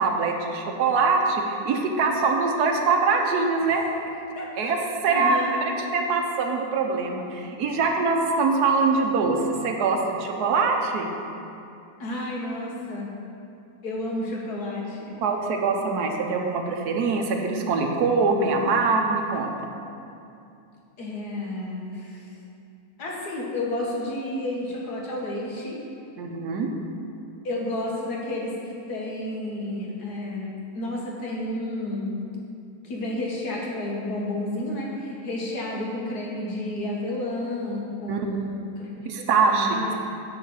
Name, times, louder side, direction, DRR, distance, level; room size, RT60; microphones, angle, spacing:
voice 1, 0.0-3.8 4.6-4.8 5.0-5.4 5.6-11.1 15.2-19.5 26.2-26.7 38.1-38.3 39.1-39.7, right 4 dB, 85° right, 2 dB, 1.4 m, -23 dB
voice 2, 4.4-4.7 5.1-5.6 12.0-13.1 13.8-15.2 21.0-22.3 23.0-25.8 27.4-32.1 32.8-38.9 39.5-39.9, left 1 dB, 80° left, -3 dB, 1.9 m, -31 dB
9.4 x 4.0 x 6.9 m, 2.6 s
omnidirectional pair, 1.7 m